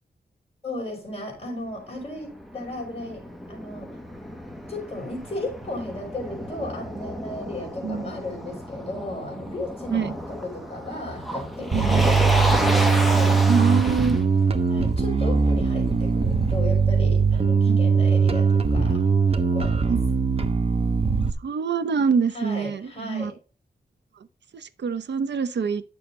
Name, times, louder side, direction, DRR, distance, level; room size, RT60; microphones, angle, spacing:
voice 1, 0.6-4.0 4.7-13.4 14.7-19.0 19.3-19.9 22.3-23.3, left 1 dB, 35° left, 5.1 m, -35 dB
Motor vehicle (road), 1.7-16.7, equal, ahead, 1.2 m, -31 dB
Bass guitar, 11.7-21.3, right 5 dB, 35° right, 0.8 m, -21 dB
voice 2, 11.7-12.1 13.5-14.2 17.7-17.8 19.9-20.0 21.4-23.3 24.5-25.8, right 5 dB, 85° right, 0.7 m, -25 dB
9.7 x 7.0 x 3.1 m
wide cardioid pair, 150°, 18 cm